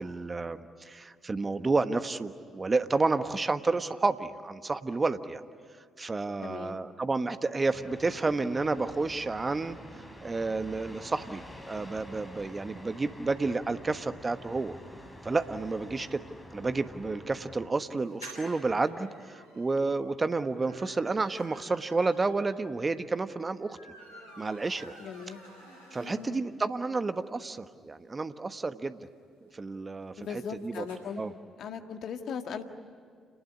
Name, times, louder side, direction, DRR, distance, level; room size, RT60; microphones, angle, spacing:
voice 1, 0.0-5.4 6.0-9.8 10.2-14.8 15.2-16.2 16.5-23.8 24.4-24.9 25.9-29.0 29.5-30.8 31.2-31.3, right 3 dB, 30° right, 10 dB, 1.3 m, -30 dB
voice 2, 6.4-6.8 25.0-25.4 26.0-26.4 30.2-31.2 31.6-32.6, left 6 dB, 60° left, 6 dB, 1.8 m, -38 dB
sound 1, 7.7-17.7, left 1 dB, 10° left, 7.0 m, -48 dB
sound 2, 17.9-26.5 26.9-27.0 27.2-27.3 27.6-31.0, right 1 dB, 85° left, 6.2 m, -52 dB
30.0 x 20.0 x 9.9 m, 2.2 s
figure-of-eight pair, 40°, 0 cm